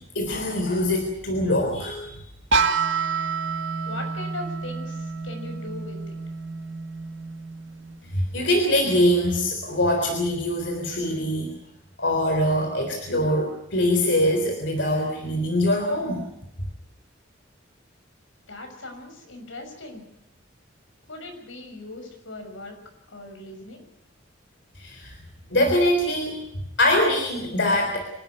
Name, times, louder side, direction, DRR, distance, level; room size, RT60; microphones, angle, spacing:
voice 1, 0.2-2.1 8.1-11.6 12.0-16.3 24.8-25.1 25.5-26.4 26.8-28.0, left 1 dB, 65° left, 3 dB, 3.8 m, -23 dB
sound 1, 2.5-8.3, right 4 dB, 70° right, 1.9 m, -28 dB
voice 2, 3.8-6.2 18.5-20.0 21.1-22.8 23.1-23.8, left 2 dB, 85° left, 4 dB, 6.3 m, -39 dB
26.0 x 13.0 x 9.6 m, 0.79 s
head